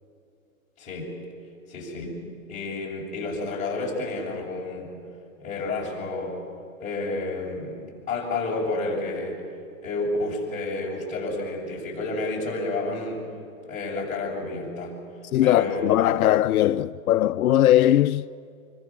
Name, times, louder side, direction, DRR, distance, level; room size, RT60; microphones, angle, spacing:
voice 1, 0.8-1.1 1.7-2.2 2.5-4.9 5.4-6.4 6.8-9.4 9.8-13.2 13.6-15.0 15.4-16.0, left 2 dB, 15° left, 7.4 m, -30 dB
voice 2, 15.3-18.3, left 12 dB, 85° left, 0.7 m, -20 dB
26.0 x 24.0 x 7.5 m
hypercardioid pair, 160°, 42 cm